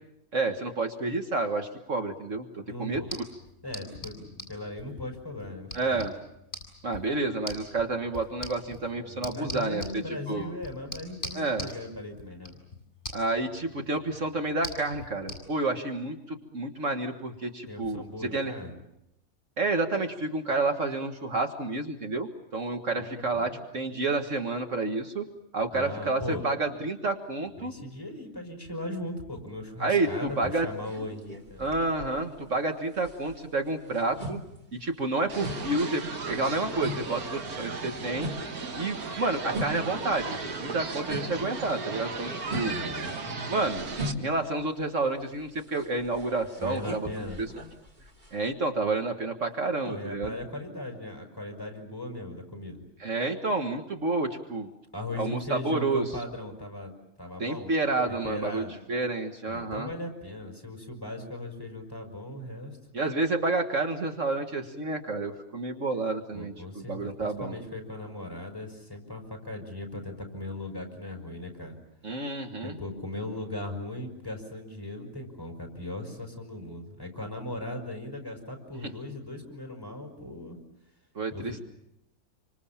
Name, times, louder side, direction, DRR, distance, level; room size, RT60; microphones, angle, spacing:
voice 1, 0.3-3.2 5.7-6.1 6.8-9.8 10.3-10.6 11.3-11.7 13.1-18.0 18.3-18.5 19.6-25.2 25.5-27.7 29.8-30.7 31.6-34.4 34.7-38.3 38.8-42.8 43.5-43.9 44.2-47.1 47.4-47.5 48.3-50.3 53.0-54.7 55.2-56.1 57.4-58.6 58.9-59.9 62.9-67.6 72.0-72.8 81.2-81.6, right 2 dB, 60° right, 5 dB, 2.0 m, -29 dB
voice 2, 2.6-3.1 3.6-6.1 9.0-12.6 17.7-18.7 23.0-23.6 25.7-26.5 27.6-31.9 42.5-43.5 46.6-47.4 49.8-52.8 54.9-56.9 57.2-57.7 58.1-58.7 59.5-62.8 66.3-71.7 72.6-80.6 81.3-81.6, left 1 dB, 15° left, 3 dB, 5.5 m, -38 dB
sound 1, 2.9-15.4, left 1 dB, 35° left, 7.2 m, -44 dB
sound 2, 30.3-32.7 32.9-41.6 41.9-48.5, left 1 dB, 30° right, 3.0 m, -40 dB
sound 3, 35.3-44.1, right 4 dB, 85° right, 2.3 m, -36 dB
28.0 x 25.5 x 7.3 m, 0.82 s
omnidirectional pair, 1.5 m